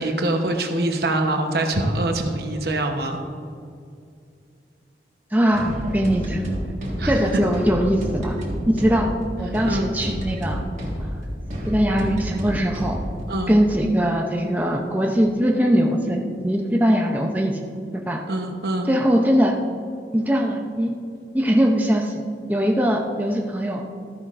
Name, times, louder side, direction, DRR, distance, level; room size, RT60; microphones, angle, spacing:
voice 1, 0.0-3.2 7.0-7.4 9.6-9.9 13.3-13.6 18.3-18.9, right 1 dB, 60° right, 4 dB, 1.0 m, -24 dB
voice 2, 5.3-6.4 7.1-8.3 8.7-10.6 11.0-11.1 11.6-13.0 13.5-17.6 18.1-18.2 18.9-19.5 20.1-20.9 21.3-22.2 22.5-23.8, equal, 10° right, 0 dB, 0.6 m, -21 dB
sound 1, 5.5-13.2, equal, 40° right, 1.7 m, -30 dB
13.0 x 10.5 x 2.5 m, 2.4 s
head